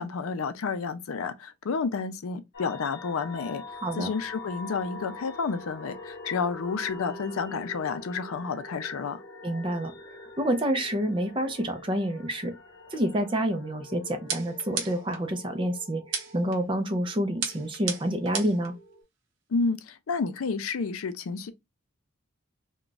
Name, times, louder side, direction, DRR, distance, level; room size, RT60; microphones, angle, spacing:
voice 1, 0.0-9.2 19.5-21.5, left 5 dB, 80° left, 0.4 m, -30 dB
sound 1, 2.5-19.0, left 2 dB, 50° left, 1.0 m, -45 dB
voice 2, 9.4-12.5 12.9-18.7, right 1 dB, 25° right, 0.5 m, -28 dB
sound 2, 14.3-15.2 16.1-16.6 17.4-18.7, right 6 dB, 60° right, 0.7 m, -33 dB
2.4 x 2.2 x 3.8 m
head